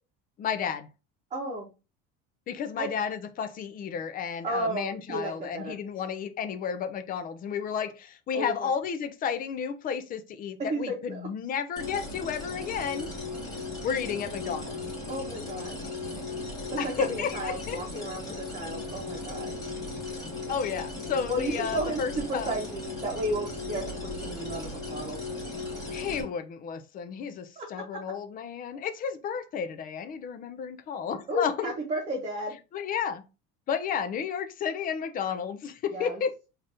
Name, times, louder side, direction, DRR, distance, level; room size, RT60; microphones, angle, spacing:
voice 1, 0.4-0.9 2.5-13.1 13.8-14.8 16.8-17.8 20.5-22.5 25.9-31.7 32.7-33.2 33.7-36.4, left 7 dB, 30° left, 0.4 m, -32 dB
voice 2, 1.3-1.7 2.8-2.9 4.4-5.7 8.3-8.7 10.7-11.2 15.1-15.8 16.7-19.5 21.3-25.2 27.6-27.7 31.3-32.5 35.9-36.2, right 1 dB, 20° right, 0.9 m, -33 dB
sound 1, 11.8-26.2, left 3 dB, 15° left, 2.1 m, -37 dB
3.9 x 2.6 x 3.4 m
cardioid pair, 145°, 29 cm